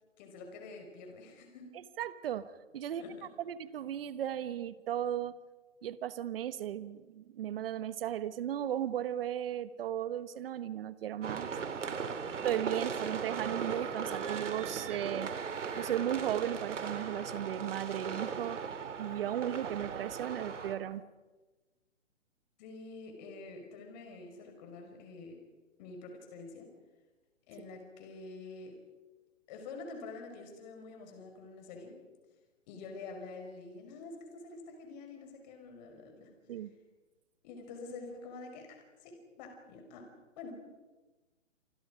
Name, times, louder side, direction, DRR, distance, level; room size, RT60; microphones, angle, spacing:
voice 1, 0.2-1.8 3.0-3.3 22.6-25.4 25.8-26.7 27.5-28.8 29.5-32.0 32.7-36.3 37.4-40.5, left 3 dB, 35° left, 4 dB, 5.6 m, -47 dB
voice 2, 1.7-3.1 3.4-5.4 5.8-11.5 12.4-15.3 15.8-18.6 19.0-21.0 36.5-36.7, right 10 dB, 45° right, 14 dB, 1.3 m, -36 dB
sound 1, 11.2-20.7, right 6 dB, 65° right, 2.9 m, -38 dB
28.5 x 25.5 x 5.1 m, 1.2 s
hypercardioid pair, 140°, 38 cm